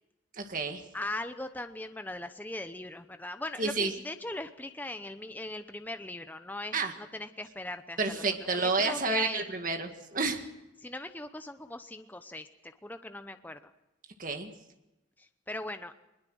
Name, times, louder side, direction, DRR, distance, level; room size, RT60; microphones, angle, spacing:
voice 1, 0.4-0.8 3.6-3.9 6.7-6.9 8.0-10.4 14.2-14.5, right 3 dB, 40° right, 5 dB, 1.9 m, -30 dB
voice 2, 0.9-9.5 10.8-13.7 15.2-15.9, left 1 dB, 10° left, 8 dB, 0.8 m, -40 dB
22.5 x 21.0 x 6.4 m, 0.96 s
head